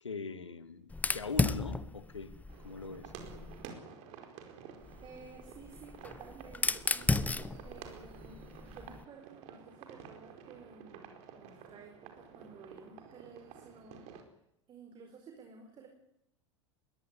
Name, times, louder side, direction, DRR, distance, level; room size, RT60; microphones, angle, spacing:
voice 1, 0.0-2.3 2.6-3.1, left 4 dB, 80° left, 1.7 m, -41 dB
Fire, 0.9-3.7 4.8-9.0, left 3 dB, 10° left, 1.0 m, -35 dB
sound 1, 2.5-14.2, right 7 dB, 50° right, 4.6 m, -51 dB
voice 2, 5.0-14.0 14.7-15.9, right 5 dB, 35° right, 4.7 m, -53 dB
22.0 x 18.0 x 9.8 m
figure-of-eight pair, 80°, 15 cm